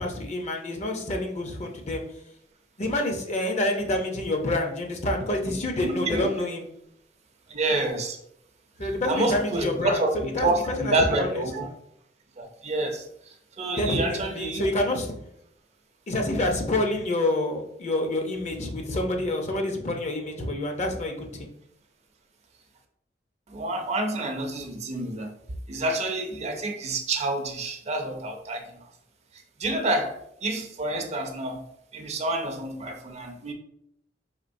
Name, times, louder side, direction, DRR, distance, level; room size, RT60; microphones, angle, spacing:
voice 1, 0.0-2.0 2.8-6.6 8.8-11.4 13.8-15.1 16.1-21.5, left 1 dB, 40° left, 3 dB, 0.6 m, -27 dB
voice 2, 5.8-6.3 7.5-8.2 8.8-11.7 12.4-14.7 23.5-25.3 25.7-28.9 29.6-33.5, right 2 dB, 40° right, 4 dB, 0.5 m, -28 dB
4.3 x 3.6 x 2.6 m, 0.73 s
head